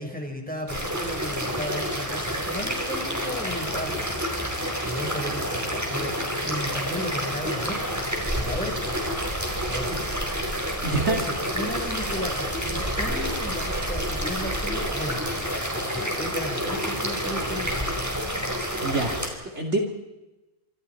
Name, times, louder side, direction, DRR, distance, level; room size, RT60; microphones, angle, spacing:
voice 1, 0.0-4.2 4.8-6.1 6.4-8.0 8.3-9.0 9.7-9.9 10.9-15.3 15.7-17.9, equal, 5° left, 2 dB, 4.7 m, -34 dB
sound 1, 0.7-19.3, equal, 10° right, 4.6 m, -29 dB
voice 2, 10.5-11.2 18.8-19.8, right 3 dB, 50° right, 2 dB, 2.8 m, -28 dB
26.5 x 26.0 x 4.5 m, 1.0 s
omnidirectional pair, 1.5 m